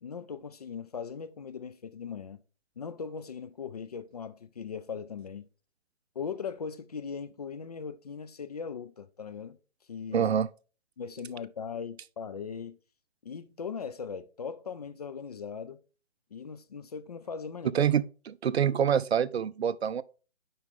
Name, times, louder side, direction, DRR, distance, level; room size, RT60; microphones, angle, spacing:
voice 1, 0.0-2.4 2.8-5.5 6.2-9.6 9.9-10.3 11.0-12.8 13.2-15.8 16.3-17.9, left 6 dB, 35° left, 0.4 m, -39 dB
voice 2, 10.1-10.5 17.7-18.0 18.4-20.0, right 8 dB, 65° right, 0.5 m, -25 dB
10.0 x 4.4 x 3.6 m
figure-of-eight pair, 140°, 34 cm